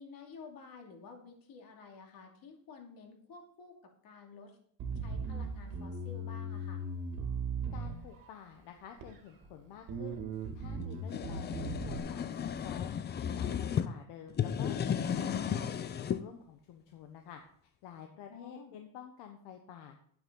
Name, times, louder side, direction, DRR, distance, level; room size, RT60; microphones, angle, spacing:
voice 1, 0.0-4.6 4.9-6.8 18.3-18.7, left 4 dB, 50° left, 2 dB, 2.6 m, -52 dB
Bass guitar, 4.8-8.4 9.0-9.5 9.9-12.0, right 3 dB, 45° right, 2.1 m, -38 dB
voice 2, 7.7-10.2 10.5-13.0 13.3-17.4 17.8-20.0, left 8 dB, 70° left, 4 dB, 1.3 m, -50 dB
sound 1, 10.8-13.9 14.3-16.2, left 8 dB, 25° left, 0.5 m, -34 dB
10.5 x 9.1 x 3.9 m, 0.62 s
cardioid pair, 140°, 43 cm